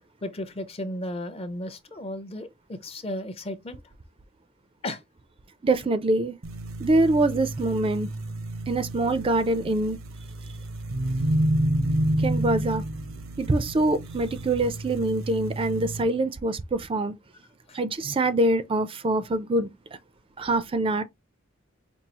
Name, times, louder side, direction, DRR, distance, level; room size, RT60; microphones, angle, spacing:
voice 1, 0.2-3.8 4.8-5.0 17.7-17.8, left 1 dB, 30° left, 0.5 m, -34 dB
voice 2, 5.6-6.4 6.8-8.1 8.7-10.0 12.2-12.8 13.4-17.1 17.7-19.7 20.4-21.0, right 2 dB, 25° right, 0.4 m, -24 dB
sound 1, 6.4-16.0, right 1 dB, 80° right, 0.7 m, -29 dB
5.3 x 2.3 x 2.9 m
head